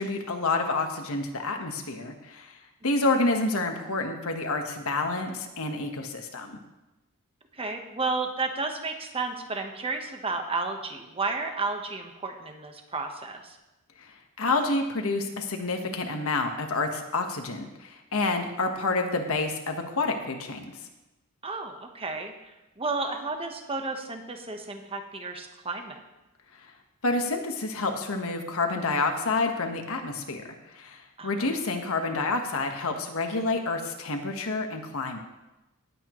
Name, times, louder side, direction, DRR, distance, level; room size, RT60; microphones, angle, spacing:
voice 1, 0.0-2.5 2.8-6.6 14.0-14.1 14.4-20.7 27.0-30.4 30.7-35.2, left 3 dB, 70° left, 4 dB, 1.4 m, -28 dB
voice 2, 7.5-13.6 21.4-26.0 31.2-31.5, right 3 dB, 25° right, 4 dB, 1.2 m, -32 dB
19.0 x 8.5 x 3.1 m, 1.0 s
head